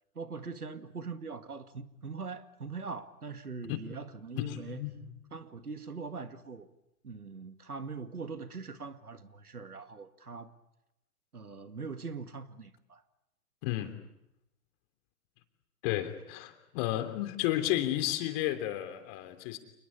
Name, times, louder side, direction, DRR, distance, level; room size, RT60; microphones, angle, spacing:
voice 1, 0.2-4.8 5.3-6.7 7.0-10.5 11.3-13.0, right 4 dB, 85° right, 2.1 m, -42 dB
voice 2, 4.4-5.1 13.6-13.9 15.8-19.6, left 14 dB, 40° left, 3.3 m, -32 dB
28.5 x 21.0 x 8.7 m
figure-of-eight pair, 110°, 44 cm